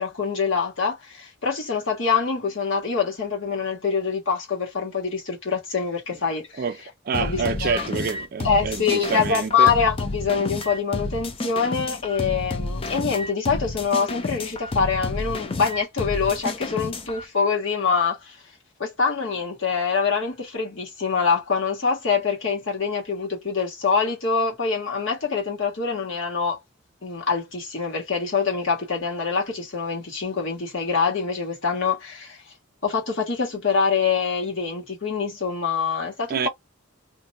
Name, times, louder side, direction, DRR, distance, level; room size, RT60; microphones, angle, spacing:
voice 1, 0.0-6.6 7.1-7.8 8.4-18.3 18.8-26.6 27.0-32.4 32.8-36.5, left 5 dB, 65° left, 1.4 m, -25 dB
voice 2, 7.0-9.7 36.3-36.5, right 5 dB, 45° right, 0.3 m, -27 dB
sound 1, 7.1-17.2, left 2 dB, 25° left, 0.4 m, -31 dB
2.6 x 2.1 x 4.0 m
head